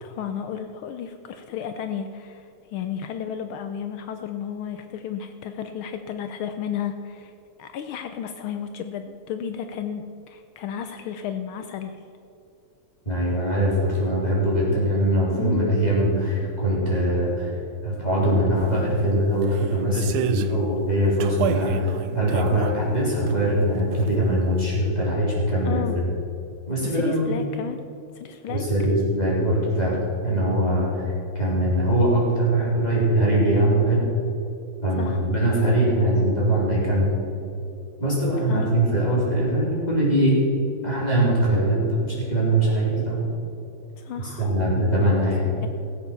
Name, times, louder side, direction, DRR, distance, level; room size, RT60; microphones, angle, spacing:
voice 1, 0.0-7.3 7.6-12.0 15.4-15.7 25.6-26.0 26.8-27.8 28.1-28.6 35.0-35.3 38.5-38.7 44.0-44.5 45.6-45.7, left 8 dB, 75° left, 8 dB, 1.4 m, -33 dB
voice 2, 13.1-17.5 17.8-26.1 26.7-27.3 28.5-31.0 31.3-34.0 34.8-37.1 38.0-40.4 40.8-43.3 44.2-45.5, right 1 dB, 20° left, -6 dB, 4.0 m, -22 dB
sound 1, 18.6-18.7 19.4-20.5 21.2-23.4 23.8-24.2 24.6-24.7, right 9 dB, 80° right, 1.5 m, -30 dB
15.5 x 7.9 x 6.9 m, 2.6 s
omnidirectional pair, 2.4 m